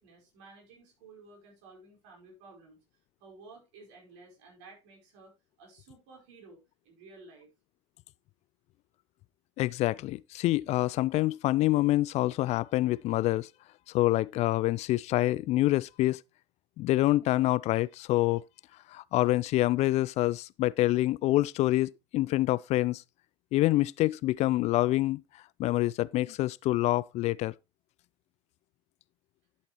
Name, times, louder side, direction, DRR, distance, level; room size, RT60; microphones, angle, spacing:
voice 1, 0.0-2.8 3.2-5.3 5.6-7.5, right 3 dB, 65° right, 4.8 m, -54 dB
voice 2, 9.6-13.5 13.9-16.2 16.8-18.4 18.9-23.0 23.5-25.2 25.6-27.5, left 17 dB, 45° left, 0.4 m, -26 dB
11.5 x 7.1 x 3.0 m
hypercardioid pair, 70°, 15 cm